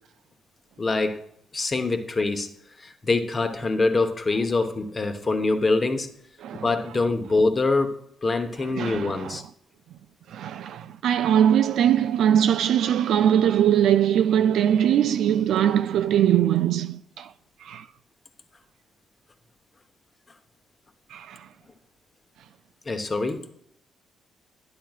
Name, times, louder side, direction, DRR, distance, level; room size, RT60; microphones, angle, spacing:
voice 1, 0.8-1.2 1.5-2.5 2.8-6.1 6.6-9.4 22.9-23.5, left 3 dB, 30° left, 1.0 m, -24 dB
voice 2, 8.8-9.4 10.3-17.3 17.6-17.8 21.1-21.4, right 10 dB, 75° right, 0.3 m, -21 dB
11.5 x 10.5 x 2.4 m
cardioid pair, 90°, 0 cm